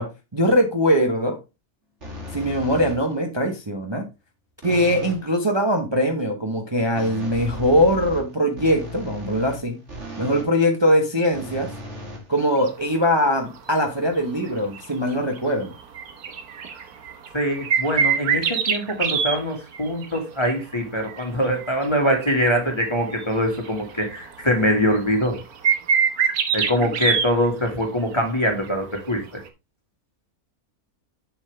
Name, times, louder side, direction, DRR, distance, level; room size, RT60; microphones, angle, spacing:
voice 1, 0.0-1.4 2.3-4.1 4.6-9.8 10.2-11.7 12.3-15.7, equal, 20° right, 1.0 m, -21 dB
sound 1, 2.0-3.2 4.6-5.3 7.0-10.6 11.3-12.8, left 1 dB, 50° right, 2.8 m, -36 dB
sound 2, 12.4-12.7 13.6-13.7 14.2-14.5 14.7-14.9 15.1-15.4 15.8-19.4 19.7-20.6 21.1-22.5 22.9-23.0 23.2-24.3 24.9-25.0 25.2-27.3 28.7-28.8 29.5-29.6, right 7 dB, 90° right, 1.6 m, -24 dB
voice 2, 17.3-25.4 26.5-29.4, equal, 20° left, 1.9 m, -23 dB
7.3 x 7.2 x 3.3 m
omnidirectional pair, 1.5 m